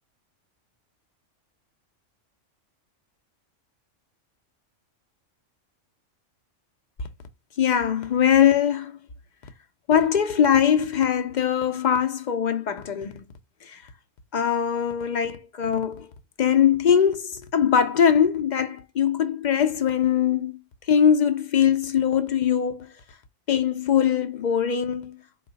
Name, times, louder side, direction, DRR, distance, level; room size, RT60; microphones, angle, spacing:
voice 1, 7.6-9.0 9.9-13.2 13.6-13.8 14.3-16.1 16.4-20.6 20.9-22.9 23.5-25.2, left 8 dB, 60° left, 0.5 m, -21 dB
4.5 x 2.3 x 3.9 m
omnidirectional pair, 1.3 m